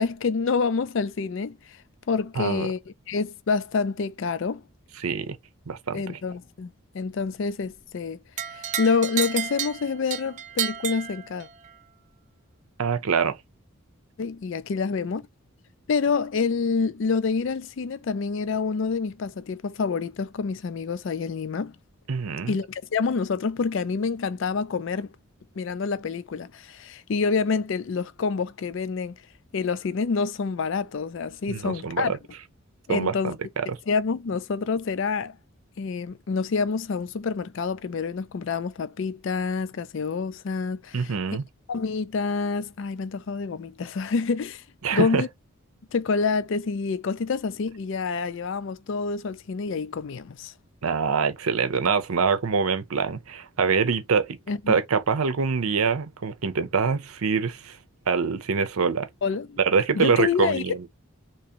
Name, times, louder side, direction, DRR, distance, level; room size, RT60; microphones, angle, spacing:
voice 1, 0.0-1.8 2.1-4.6 5.9-8.2 8.5-11.5 14.2-15.2 15.9-21.8 22.5-25.1 25.6-29.2 29.5-32.1 32.9-33.3 33.9-35.3 35.8-41.1 41.7-44.6 44.9-45.3 45.9-50.5 54.5-54.8 59.2-59.6 60.0-60.6, left 5 dB, 60° left, 0.4 m, -27 dB
voice 2, 2.4-2.7 5.0-5.4 5.7-6.2 12.8-13.4 22.1-22.6 31.5-32.2 32.9-33.4 33.7-33.8 40.9-41.4 44.8-45.2 50.8-54.4 54.7-57.8 58.1-59.1 59.6-60.9, right 5 dB, 85° right, 0.7 m, -24 dB
sound 1, 8.4-11.7, right 10 dB, 35° right, 0.4 m, -31 dB
3.5 x 3.0 x 2.8 m
head